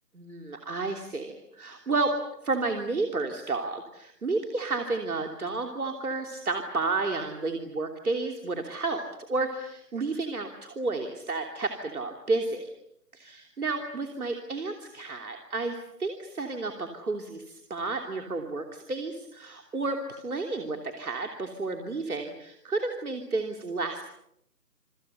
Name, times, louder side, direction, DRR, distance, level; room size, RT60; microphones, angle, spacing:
voice 1, 0.1-2.1 2.4-9.0 9.3-12.7 13.1-24.0, right 3 dB, 60° right, 4 dB, 3.2 m, -31 dB
28.5 x 25.0 x 7.0 m, 0.77 s
figure-of-eight pair, 175°, 49 cm